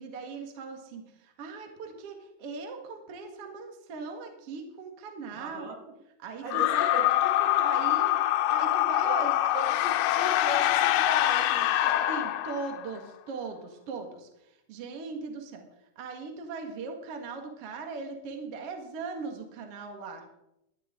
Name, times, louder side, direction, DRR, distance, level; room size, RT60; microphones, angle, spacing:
voice 1, 0.0-5.7 6.2-6.9 7.6-8.2 8.5-9.3 12.1-14.3 14.7-15.7 16.0-20.2, right 4 dB, 45° right, 4 dB, 2.2 m, -39 dB
voice 2, 5.3-6.0 6.4-8.0 9.0-9.3 9.5-12.1, right 3 dB, 80° right, 1 dB, 4.2 m, -39 dB
sound 1, 6.5-12.9, left 14 dB, 80° left, 2.6 m, -25 dB
19.0 x 12.0 x 3.8 m, 0.86 s
omnidirectional pair, 4.4 m